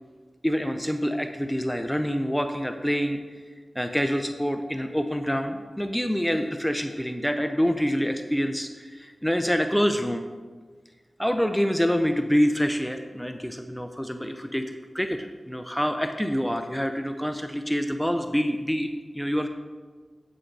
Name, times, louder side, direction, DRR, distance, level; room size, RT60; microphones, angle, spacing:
voice 1, 0.4-3.2 3.7-10.3 11.2-19.5, equal, 5° left, 7 dB, 0.6 m, -26 dB
9.0 x 6.4 x 4.6 m, 1.5 s
cardioid pair, 45°, 0 cm